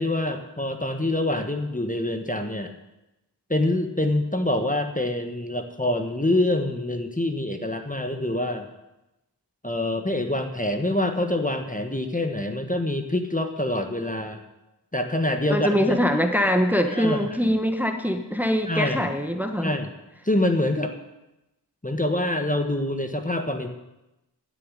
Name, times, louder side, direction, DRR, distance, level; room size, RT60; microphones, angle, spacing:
voice 1, 0.0-2.7 3.5-8.7 9.6-14.4 14.9-15.9 16.9-17.6 18.7-19.0 19.6-19.9 20.2-20.9 21.8-23.7, left 1 dB, 20° left, 5 dB, 1.4 m, -25 dB
voice 2, 15.5-19.7, equal, 5° right, 5 dB, 1.3 m, -23 dB
12.0 x 7.0 x 9.9 m, 0.96 s
wide cardioid pair, 45°, 42 cm